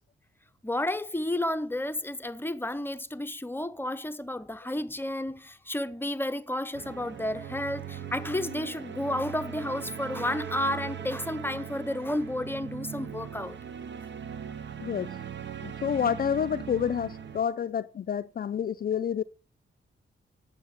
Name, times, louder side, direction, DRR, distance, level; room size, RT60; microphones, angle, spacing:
voice 1, 0.6-13.6, left 1 dB, 10° left, 0.6 m, -31 dB
sound 1, 6.7-17.4, right 8 dB, 65° right, 1.0 m, -39 dB
voice 2, 14.8-15.2 15.6-19.2, left 8 dB, 45° left, 0.4 m, -29 dB
8.7 x 7.7 x 6.9 m
wide cardioid pair, 105°, 20 cm